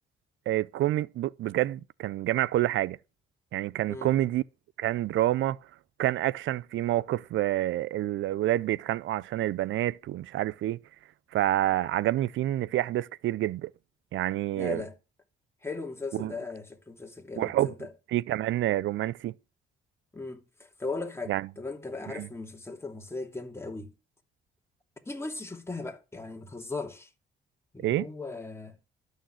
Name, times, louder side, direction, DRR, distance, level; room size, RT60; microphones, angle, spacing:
voice 1, 0.5-3.0 3.5-4.4 4.8-5.6 6.0-10.8 11.3-13.7 14.1-14.8 16.1-16.3 17.4-17.7 18.1-19.3 21.3-21.5 22.1-22.3 27.8-28.0, right 14 dB, 75° right, 0.6 m, -28 dB
voice 2, 14.5-15.0 15.6-17.9 20.1-23.9 25.1-27.1 27.7-28.8, left 3 dB, 15° left, 2.7 m, -38 dB
12.5 x 6.6 x 7.7 m
cardioid pair, 90°, 20 cm